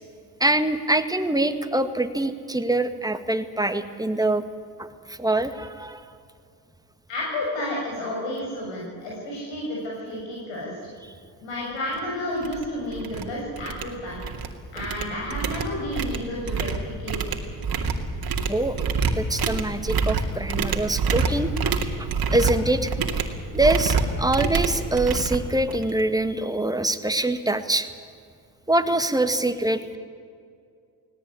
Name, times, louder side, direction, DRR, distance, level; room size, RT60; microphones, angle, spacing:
voice 1, 0.4-4.4 4.8-6.0 18.5-18.8 19.2-21.7 22.0-22.9 23.5-27.9 28.7-30.0, right 2 dB, 10° right, 9 dB, 1.7 m, -24 dB
voice 2, 7.1-10.7 11.4-14.2 14.7-17.3, left 1 dB, 75° left, -4 dB, 6.7 m, -31 dB
sound 1, 11.9-12.0 12.4-12.6 12.9-13.2 13.6-14.5 14.8-26.0, right 5 dB, 50° right, 2.5 m, -26 dB
18.5 x 18.0 x 9.8 m, 2.3 s
supercardioid pair, 70°, 45 cm